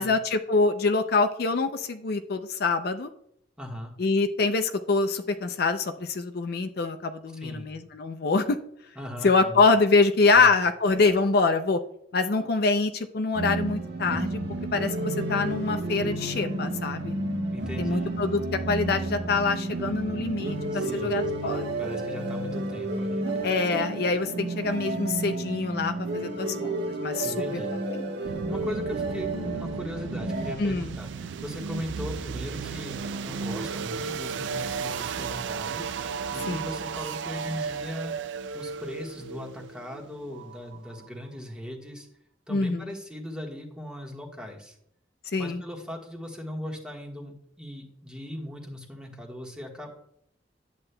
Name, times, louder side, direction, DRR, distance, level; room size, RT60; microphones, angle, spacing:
voice 1, 0.0-3.1 4.0-8.6 9.2-11.8 12.1-14.4 14.7-17.1 17.8-21.6 23.4-27.3 27.9-28.0 30.6-30.9 36.5-36.6 42.5-42.9 45.3-45.6, left 3 dB, 60° left, 8 dB, 0.5 m, -25 dB
voice 2, 3.6-3.9 7.3-7.7 8.9-9.6 10.3-10.5 17.5-18.2 20.7-23.4 27.2-27.7 28.2-35.9 36.3-38.2 38.5-42.1 42.5-44.8 45.4-49.9, left 1 dB, 5° right, 0 dB, 1.3 m, -39 dB
sound 1, 13.3-30.5, right 2 dB, 70° right, 1.2 m, -31 dB
sound 2, 28.3-41.1, right 5 dB, 90° right, 0.3 m, -34 dB
10.5 x 8.2 x 2.2 m, 0.73 s
head